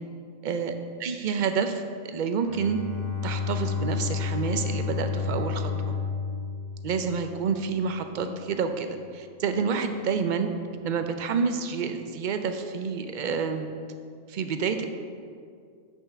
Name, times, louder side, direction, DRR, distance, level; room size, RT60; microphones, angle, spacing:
voice 1, 0.4-0.7 1.0-2.8 3.2-5.9 6.8-10.5 10.8-13.7 14.3-14.8, right 5 dB, 50° right, 7 dB, 0.6 m, -28 dB
Bowed string instrument, 2.4-7.7, left 6 dB, 30° left, 1.3 m, -31 dB
6.3 x 5.6 x 6.7 m, 2.2 s
omnidirectional pair, 1.3 m